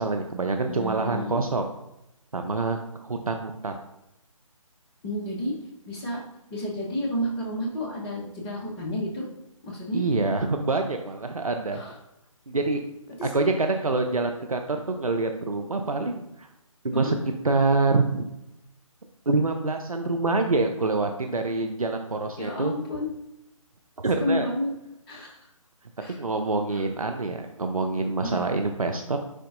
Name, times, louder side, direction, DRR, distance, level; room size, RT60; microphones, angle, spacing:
voice 1, 0.0-1.7 2.3-3.7 9.9-11.8 12.5-12.8 13.2-16.5 16.8-17.1 17.4-18.3 19.3-22.7 24.0-24.5 26.2-29.2, right 3 dB, 85° right, 5 dB, 0.8 m, -26 dB
voice 2, 0.7-1.4 5.0-5.5 5.9-6.2 6.5-9.3 9.6-10.0 11.7-12.0 13.2-13.5 16.9-17.1 22.4-23.1 24.2-24.7 25.1-25.4 26.0-26.2 26.7-26.8 28.2-28.5, equal, 15° left, -2 dB, 1.2 m, -30 dB
10.0 x 3.9 x 2.6 m, 0.88 s
figure-of-eight pair, 150°, 18 cm